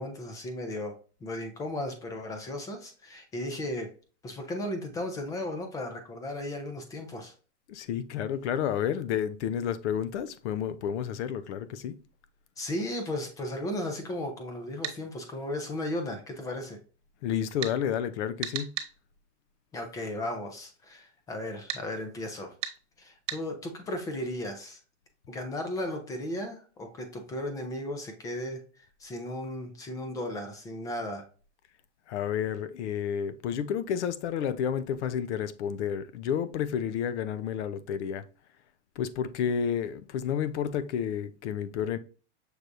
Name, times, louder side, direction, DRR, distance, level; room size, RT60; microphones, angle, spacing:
voice 1, 0.0-3.9 4.2-7.3 12.6-16.8 19.7-22.5 23.0-24.8 25.3-31.2, left 1 dB, 10° left, 0.3 m, -35 dB
voice 2, 7.7-12.0 17.2-18.7 32.1-38.2 39.0-42.0, left 8 dB, 70° left, 0.6 m, -30 dB
sound 1, 14.8-15.0 17.6-17.8 18.4-18.9 21.7-21.8 22.6-22.8 23.3-23.4, right 10 dB, 80° right, 1.1 m, -34 dB
6.1 x 3.3 x 2.6 m
supercardioid pair, 155°, 35 cm